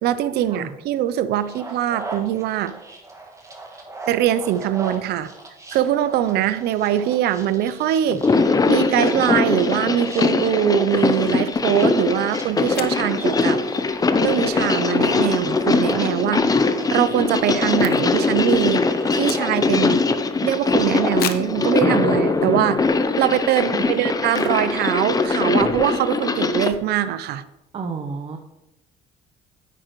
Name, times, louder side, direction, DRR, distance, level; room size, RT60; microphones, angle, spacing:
voice 1, 0.0-2.7 4.1-5.3 5.7-13.6 14.2-20.0 20.4-22.9 23.2-27.4, right 11 dB, 75° right, 13 dB, 0.6 m, -22 dB
sound 1, 1.4-19.1, right 2 dB, 20° right, 1.7 m, -40 dB
sound 2, 8.1-26.7, left 4 dB, 20° left, 0.6 m, -21 dB
sound 3, 12.7-13.1 16.0-16.3 16.6-16.7 16.9-18.4 18.6-19.9 20.3-20.4 21.2-21.6 22.3-22.4 22.9-23.1 24.3-24.7 25.0-25.1 25.2-25.6, left 11 dB, 65° left, 0.7 m, -34 dB
voice 2, 23.7-24.1 27.7-28.4, right 5 dB, 35° right, 4 dB, 0.8 m, -31 dB
9.8 x 8.8 x 3.1 m, 0.91 s
cardioid pair, 110°, 17 cm